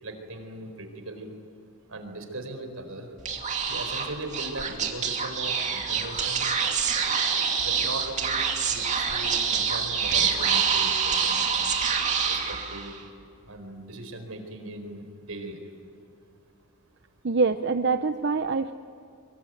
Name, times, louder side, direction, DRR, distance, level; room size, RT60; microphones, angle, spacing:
voice 1, 0.0-1.3 1.9-3.1 3.7-6.5 7.6-11.5 12.3-13.0 13.5-15.6, right 2 dB, 80° right, 6 dB, 4.5 m, -39 dB
Speech / Whispering, 3.2-13.0, right 6 dB, 35° right, 2.6 m, -26 dB
voice 2, 17.2-18.7, right 4 dB, 55° right, 9 dB, 0.7 m, -25 dB
24.0 x 24.0 x 9.3 m, 2.5 s
head